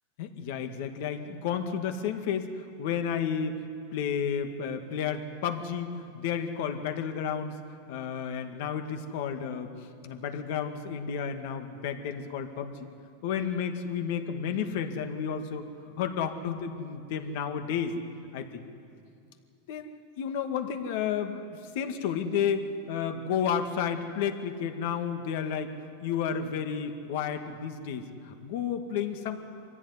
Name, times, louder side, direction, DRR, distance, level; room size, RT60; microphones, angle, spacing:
voice 1, 0.2-3.6 3.9-7.6 7.9-12.9 13.2-15.7 16.0-18.0 18.3-18.6 19.7-25.7 26.0-29.4, left 7 dB, 60° left, 6 dB, 2.1 m, -32 dB
25.0 x 15.5 x 9.9 m, 2.5 s
supercardioid pair, 150°, 0 cm